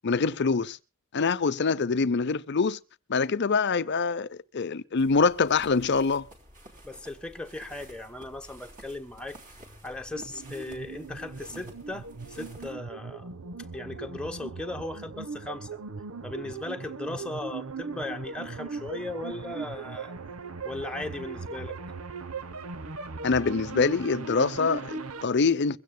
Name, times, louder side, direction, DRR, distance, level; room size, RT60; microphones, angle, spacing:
voice 1, 0.0-0.8 1.1-2.8 3.1-4.3 4.5-6.3 23.2-25.8, left 4 dB, 55° left, 0.7 m, -25 dB
sound 1, 5.0-12.7, right 1 dB, 40° right, 3.6 m, -51 dB
voice 2, 6.8-9.4 9.8-13.3 13.7-15.7 16.2-20.1 20.6-21.8, left 2 dB, 5° left, 1.1 m, -37 dB
sound 2, 10.1-25.3, right 4 dB, 85° right, 1.0 m, -39 dB
23.0 x 16.0 x 2.3 m
head